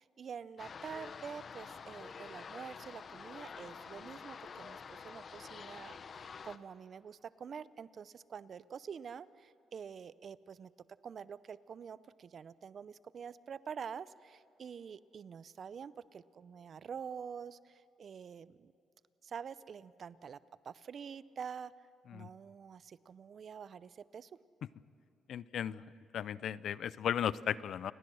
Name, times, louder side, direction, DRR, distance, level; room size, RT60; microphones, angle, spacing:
voice 1, 0.0-10.7 11.0-18.7 19.2-20.4 20.6-24.3, right 7 dB, 50° right, 17 dB, 0.6 m, -47 dB
sound 1, 0.6-6.6, left 6 dB, 45° left, 0.9 m, -48 dB
voice 2, 25.3-25.8 26.1-27.9, left 9 dB, 65° left, 19 dB, 0.5 m, -35 dB
29.0 x 18.5 x 6.3 m, 2.7 s
cardioid pair, 90°, 0 cm